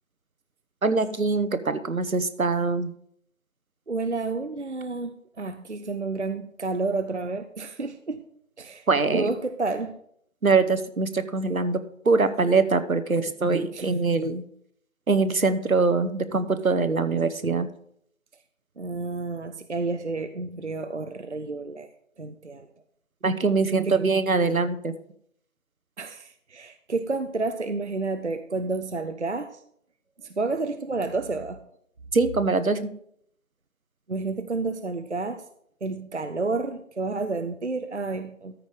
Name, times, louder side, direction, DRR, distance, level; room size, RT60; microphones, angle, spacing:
voice 1, 0.8-2.9 8.9-9.3 10.4-11.8 12.0-14.4 15.1-17.7 23.2-24.9 32.1-32.9, right 4 dB, 80° right, 11 dB, 1.0 m, -23 dB
voice 2, 3.9-8.2 8.6-10.0 13.7-13.9 18.8-21.9 22.2-22.7 23.8-24.0 26.0-29.6 30.2-31.6 34.1-35.4 35.8-38.5, right 3 dB, 55° right, 9 dB, 0.6 m, -30 dB
13.5 x 5.1 x 5.0 m, 0.69 s
figure-of-eight pair, 175°, 41 cm